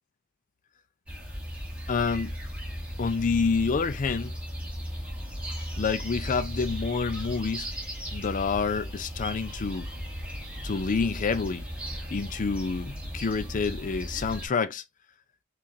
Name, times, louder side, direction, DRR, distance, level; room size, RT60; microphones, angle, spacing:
sound 1, 1.1-14.5, equal, 5° right, 1.7 m, -36 dB
voice 1, 1.9-2.4 3.0-4.3 5.8-7.7 8.1-9.9 10.6-11.7 12.1-14.8, left 5 dB, 35° left, 0.4 m, -28 dB
5.9 x 2.5 x 2.7 m
head